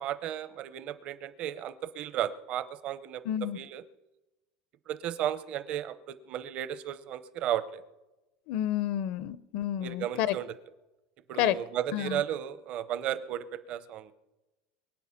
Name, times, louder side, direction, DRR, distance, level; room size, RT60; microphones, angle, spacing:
voice 1, 0.0-3.2 3.5-3.8 4.9-7.8 9.8-10.5 11.3-14.1, right 11 dB, 40° right, 13 dB, 0.7 m, -34 dB
voice 2, 3.3-3.6 8.5-10.4 11.4-11.6 11.9-12.2, left 11 dB, 55° left, 17 dB, 0.5 m, -29 dB
23.0 x 8.1 x 5.8 m, 1.1 s
cardioid pair, 170°, 3 cm